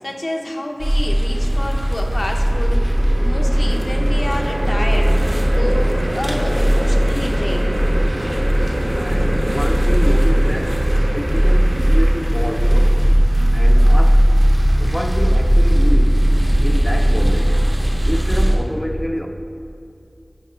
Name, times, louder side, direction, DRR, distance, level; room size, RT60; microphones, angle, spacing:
voice 1, 0.0-2.9 3.2-5.1 5.4-7.8, left 1 dB, 70° left, 1 dB, 0.6 m, -28 dB
sound 1, 0.8-18.6, equal, 45° right, 0.7 m, -17 dB
sound 2, 1.7-13.0, right 1 dB, 75° right, 0.6 m, -27 dB
voice 2, 9.0-10.9 11.1-13.0 13.5-14.3 14.8-16.2 16.6-17.6 18.0-19.3, equal, 10° left, 3 dB, 0.4 m, -27 dB
5.1 x 4.8 x 4.2 m, 2.5 s
wide cardioid pair, 40°, 0 cm